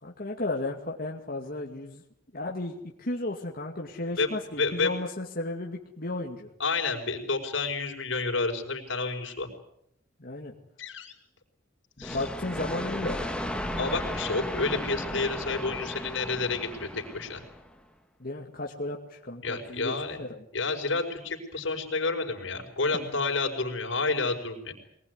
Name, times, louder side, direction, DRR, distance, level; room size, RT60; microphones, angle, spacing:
voice 1, 0.0-2.0 2.3-6.5 10.2-10.5 12.0-13.2 18.2-19.9 20.2-20.4 22.9-23.2, left 2 dB, 50° left, -1 dB, 2.4 m, -34 dB
voice 2, 4.6-4.9 6.6-9.5 10.8-11.2 12.0-12.2 13.8-17.4 19.4-20.2 20.5-24.7, left 3 dB, 85° left, 3 dB, 5.1 m, -30 dB
sound 1, 12.0-17.7, left 1 dB, 5° left, 1.8 m, -35 dB
23.5 x 20.0 x 9.7 m, 0.76 s
head